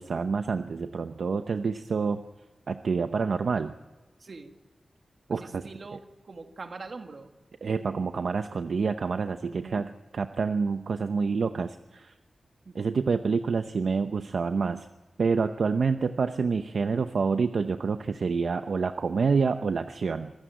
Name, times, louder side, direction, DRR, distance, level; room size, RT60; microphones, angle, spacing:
voice 1, 0.0-2.2 2.7-3.7 5.3-5.6 7.6-9.9 10.1-12.1 12.7-14.9 15.2-20.3, right 5 dB, 70° right, 8 dB, 0.8 m, -27 dB
voice 2, 4.2-4.6 5.3-7.3 9.5-9.8 12.6-13.1, right 3 dB, 50° right, 6 dB, 1.9 m, -43 dB
26.0 x 15.0 x 9.3 m, 1.2 s
wide cardioid pair, 135°, 0 cm